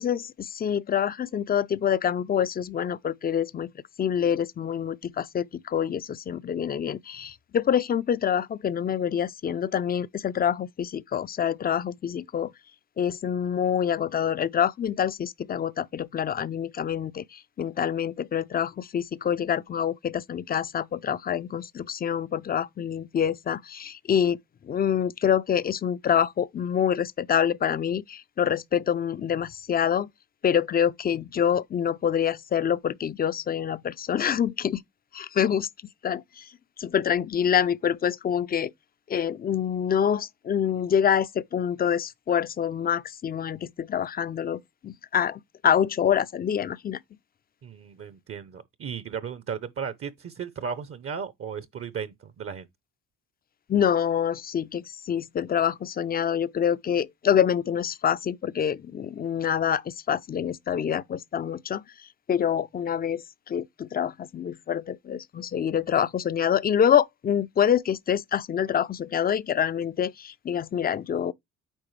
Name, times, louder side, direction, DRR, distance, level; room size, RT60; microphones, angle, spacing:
voice 1, 0.0-3.7 4.0-12.5 13.0-24.4 24.6-30.1 30.4-34.8 35.1-35.7 36.0-36.5 36.8-38.7 39.1-47.0 53.7-61.8 62.3-71.3, left 8 dB, 30° left, 0.4 m, -26 dB
voice 2, 47.6-52.7, right 6 dB, 50° right, 0.7 m, -35 dB
8.8 x 4.9 x 3.2 m
cardioid pair, 90°, 30 cm